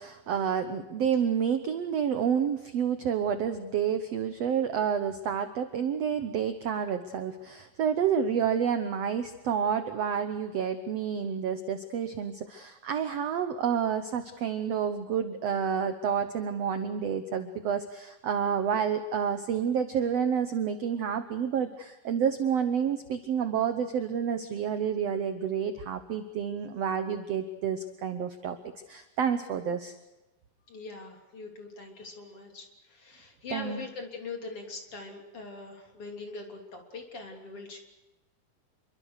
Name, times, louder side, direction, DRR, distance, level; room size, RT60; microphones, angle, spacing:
voice 1, 0.0-28.6 28.9-30.0 33.5-33.9, right 7 dB, 65° right, 9 dB, 1.6 m, -29 dB
voice 2, 30.7-37.8, left 3 dB, 40° left, 3 dB, 4.1 m, -42 dB
27.0 x 23.5 x 6.6 m, 1.0 s
omnidirectional pair, 4.2 m